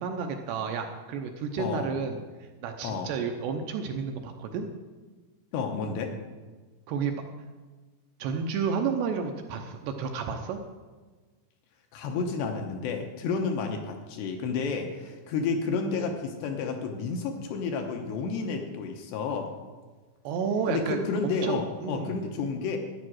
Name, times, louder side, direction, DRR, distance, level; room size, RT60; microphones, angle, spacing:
voice 1, 0.0-2.2 2.6-4.7 6.9-7.2 8.2-10.6 20.2-22.1, right 6 dB, 75° right, 4 dB, 2.6 m, -31 dB
voice 2, 1.6-1.9 2.8-3.1 5.5-6.1 11.9-19.5 20.7-22.8, left 4 dB, 75° left, 3 dB, 2.8 m, -31 dB
12.5 x 9.6 x 6.2 m, 1.3 s
omnidirectional pair, 5.4 m